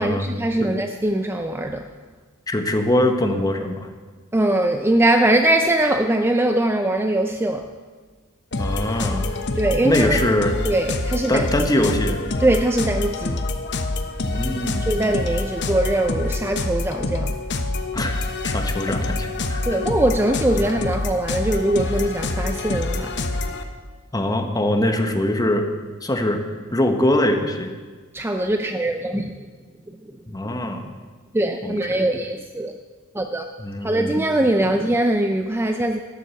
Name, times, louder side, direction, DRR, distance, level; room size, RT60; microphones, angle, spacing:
voice 1, 0.0-1.9 4.3-7.7 9.6-10.2 10.6-11.5 12.4-13.4 14.8-17.4 19.6-23.2 28.1-29.3 30.0-30.1 31.3-32.7 33.1-33.5 33.8-36.0, right 1 dB, 10° right, 5 dB, 0.5 m, -21 dB
voice 2, 2.5-3.9 8.6-9.4 9.8-10.6 11.3-12.3 14.2-15.0 17.9-19.8 20.6-20.7 24.1-25.6 26.0-26.4 26.7-27.7 30.3-30.9 31.6-32.1 33.6-34.2 34.6-34.7, left 1 dB, 20° left, 5 dB, 1.2 m, -23 dB
sound 1, 8.5-23.6, left 2 dB, 55° left, 1.0 m, -26 dB
13.5 x 9.9 x 7.1 m, 1.4 s
head